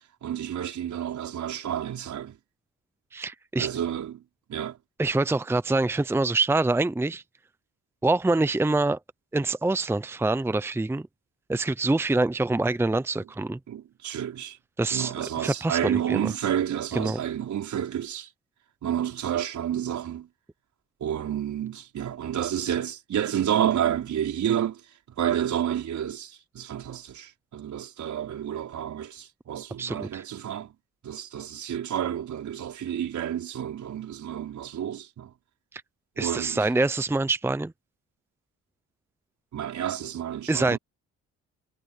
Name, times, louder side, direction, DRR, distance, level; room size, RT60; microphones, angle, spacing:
voice 1, 0.2-2.4 3.6-4.2 4.5-4.8 13.7-14.6 14.9-18.3 18.8-20.3 21.0-24.8 25.1-30.7 31.0-35.3 36.2-36.6 39.5-40.8, right 10 dB, 65° right, 4.7 m, -30 dB
voice 2, 3.1-3.7 5.0-7.2 8.0-9.0 9.3-11.1 11.5-13.6 14.8-16.3 16.9-17.2 29.8-30.2 35.7-35.8 36.2-37.7 40.5-40.8, right 2 dB, 10° right, 0.7 m, -25 dB
supercardioid pair, 70°, 31 cm